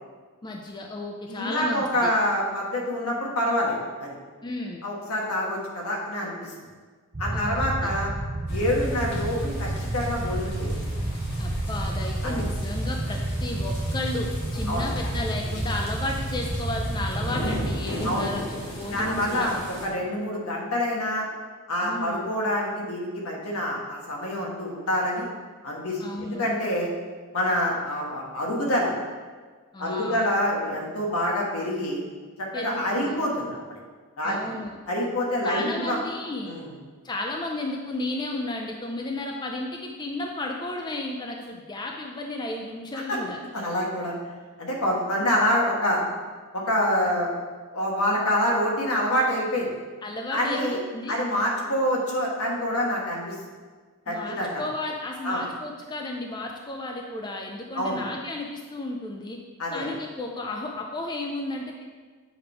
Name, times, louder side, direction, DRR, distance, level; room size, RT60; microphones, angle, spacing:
voice 1, 0.4-2.1 4.4-4.8 7.3-7.9 11.4-14.3 14.5-19.6 21.8-22.3 26.0-26.5 29.7-30.3 32.5-33.2 34.2-34.8 35.4-36.6 37.0-43.4 45.2-45.6 50.0-51.2 54.1-59.4 59.7-61.8, left 2 dB, 20° left, 1 dB, 0.4 m, -33 dB
voice 2, 1.3-4.1 4.8-6.5 7.2-8.1 8.5-10.7 12.2-12.4 14.7-14.9 18.0-18.3 18.9-21.2 21.7-25.3 25.6-26.9 27.3-28.9 29.8-32.0 32.4-33.6 34.2-34.5 34.9-36.0 36.5-36.7 43.1-43.2 43.5-44.1 44.6-46.0 46.5-47.3 47.7-49.7 50.3-50.8 51.1-53.4 54.1-54.6 55.2-55.4 57.7-58.0 59.6-59.9, left 1 dB, 75° left, -2 dB, 1.4 m, -26 dB
sound 1, 7.1-17.7, right 1 dB, 30° right, 0.6 m, -30 dB
sound 2, 8.5-19.9, equal, 45° left, 1.6 m, -37 dB
7.7 x 3.5 x 4.5 m, 1.5 s
head